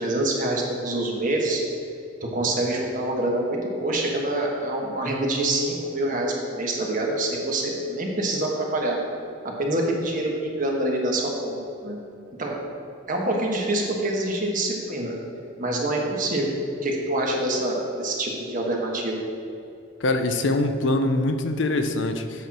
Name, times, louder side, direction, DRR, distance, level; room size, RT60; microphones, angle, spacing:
voice 1, 0.0-1.6 2.2-9.0 9.4-12.0 12.4-12.6 13.1-15.2 15.6-16.5 16.8-19.2, right 1 dB, 40° right, -1 dB, 1.2 m, -26 dB
voice 2, 20.0-22.5, left 2 dB, 65° left, 7 dB, 0.6 m, -23 dB
8.2 x 4.4 x 6.1 m, 2.6 s
head